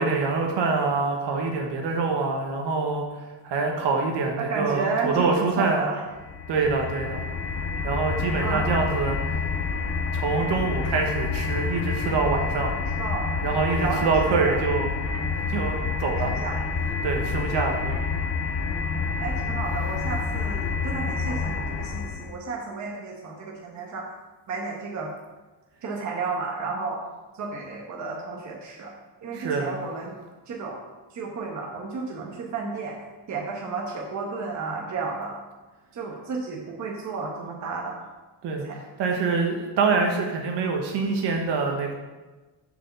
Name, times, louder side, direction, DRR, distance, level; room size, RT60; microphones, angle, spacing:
voice 1, 0.0-3.0 3.4-5.9 6.5-7.2 7.8-9.2 10.1-12.7 13.4-14.9 15.5-16.3 17.0-18.0 29.3-29.8 38.4-38.6 39.0-41.9, right 4 dB, 65° right, 1 dB, 1.4 m, -25 dB
voice 2, 4.4-6.0 8.4-8.8 13.0-13.3 13.8-14.6 16.2-16.6 19.2-24.1 24.5-25.1 25.8-27.0 27.3-28.9 29.2-30.2 30.5-30.8 31.1-33.0 33.3-35.4 35.9-38.0 38.6-38.8, right 4 dB, 40° right, -1 dB, 1.3 m, -32 dB
sound 1, 6.2-22.4, left 4 dB, 30° left, 0.7 m, -28 dB
7.3 x 5.1 x 6.7 m, 1.2 s
cardioid pair, 165°, 43 cm